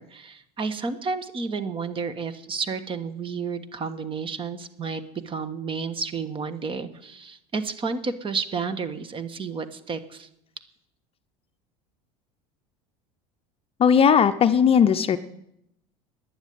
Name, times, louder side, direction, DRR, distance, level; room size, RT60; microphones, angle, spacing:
voice 1, 0.0-10.3, right 5 dB, 30° right, 12 dB, 1.4 m, -31 dB
voice 2, 13.8-15.2, left 7 dB, 30° left, 11 dB, 0.7 m, -18 dB
11.5 x 10.0 x 9.4 m, 0.79 s
supercardioid pair, 110°, 18 cm